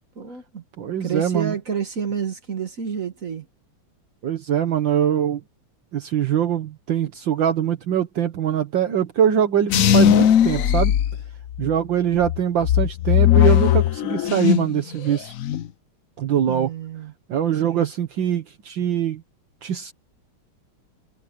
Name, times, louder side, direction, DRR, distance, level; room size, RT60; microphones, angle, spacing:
voice 1, 0.2-0.6 1.0-3.5 16.5-17.1 17.6-17.9, right 7 dB, 45° right, 1.8 m, -29 dB
voice 2, 0.8-1.6 4.2-5.4 5.9-10.9 11.6-15.3 16.2-16.7 17.3-19.2 19.6-19.9, right 9 dB, 65° right, 1.9 m, -23 dB
sound 1, 9.7-11.7 12.2-14.8 15.1-15.7, left 10 dB, 70° left, 0.8 m, -18 dB
omnidirectional pair, 2.2 m